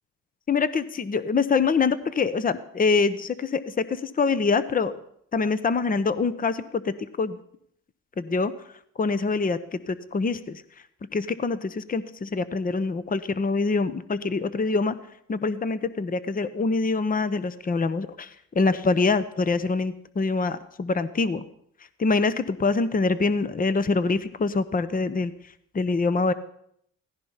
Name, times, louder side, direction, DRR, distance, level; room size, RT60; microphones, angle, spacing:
voice 1, 0.5-5.0 5.3-7.4 8.2-8.5 9.0-10.6 11.1-15.0 15.3-21.4 22.0-25.3 25.7-26.3, left 4 dB, 30° left, 13 dB, 0.9 m, -25 dB
17.0 x 14.5 x 5.7 m, 0.70 s
cardioid pair, 90°, 30 cm